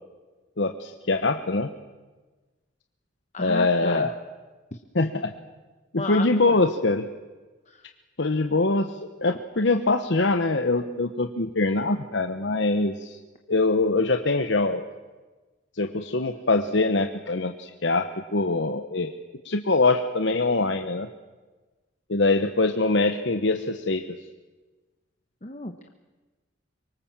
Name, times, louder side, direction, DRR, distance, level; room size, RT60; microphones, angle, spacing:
voice 1, 0.6-1.7 3.4-4.1 4.9-5.3 5.9-7.1 8.2-13.2 13.5-14.8 15.7-19.1 19.4-21.1 22.1-24.2, left 3 dB, 65° left, 7 dB, 1.1 m, -23 dB
voice 2, 3.3-4.1 6.0-6.5 25.4-25.9, left 2 dB, 35° left, 5 dB, 1.1 m, -33 dB
25.0 x 23.5 x 7.4 m, 1.3 s
head